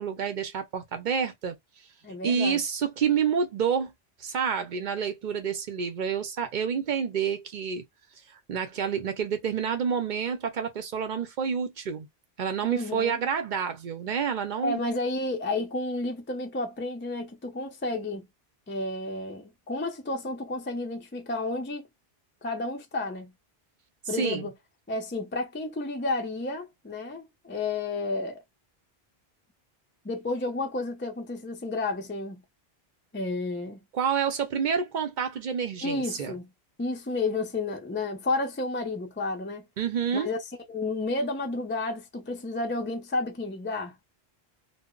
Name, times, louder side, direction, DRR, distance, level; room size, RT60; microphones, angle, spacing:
voice 1, 0.0-1.6 2.2-3.9 4.2-7.8 8.3-12.1 12.4-14.8 24.1-24.5 33.9-36.3 39.8-40.3, right 7 dB, 55° right, 0.6 m, -28 dB
voice 2, 2.0-2.6 12.6-13.2 14.6-18.3 18.7-21.8 22.4-23.3 24.1-24.5 24.9-28.4 30.0-32.4 33.1-33.8 35.8-36.5 36.8-39.7 40.1-40.4 40.7-43.9, left 2 dB, 20° left, 0.3 m, -31 dB
2.0 x 2.0 x 3.6 m
omnidirectional pair, 1.0 m